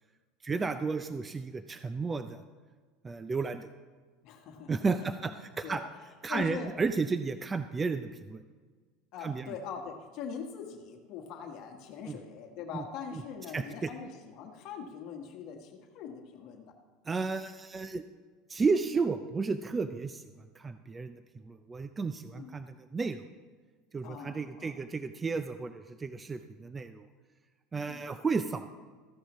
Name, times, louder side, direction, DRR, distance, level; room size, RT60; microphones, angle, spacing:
voice 1, 0.4-2.4 3.0-3.7 4.7-5.8 6.2-8.4 9.2-9.5 12.1-12.2 12.7-12.8 13.1-13.2 13.5-13.9 17.1-18.0 18.5-20.3 20.6-23.2 23.9-27.1 27.7-28.7, right 4 dB, 20° right, 10 dB, 0.4 m, -33 dB
voice 2, 4.2-4.7 5.0-5.3 5.6-5.8 6.3-6.7 9.1-16.7 22.3-22.5 24.0-24.7 27.8-28.0, left 6 dB, 60° left, 3 dB, 1.3 m, -42 dB
14.5 x 10.0 x 3.1 m, 1.5 s
supercardioid pair, 105°, 0 cm